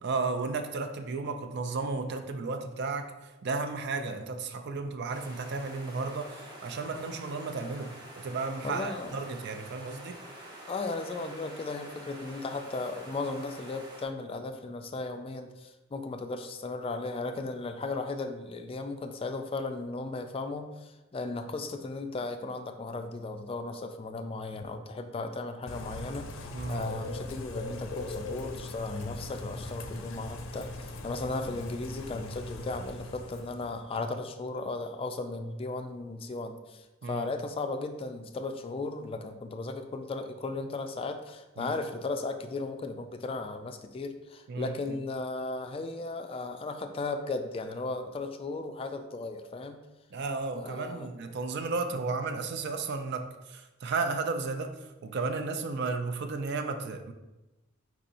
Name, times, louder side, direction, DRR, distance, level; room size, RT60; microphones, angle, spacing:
voice 1, 0.0-10.2 26.5-26.9 37.0-37.3 41.6-41.7 44.5-45.0 50.1-57.1, right 4 dB, 55° right, 7 dB, 0.4 m, -34 dB
sound 1, 5.1-14.0, right 1 dB, 20° right, 0.9 m, -47 dB
voice 2, 8.6-9.1 10.7-49.8 50.6-51.1, left 3 dB, 30° left, 7 dB, 0.3 m, -36 dB
Bird / Rain, 25.7-33.8, left 2 dB, 85° left, 0.5 m, -40 dB
4.7 x 4.1 x 2.6 m, 1.0 s
head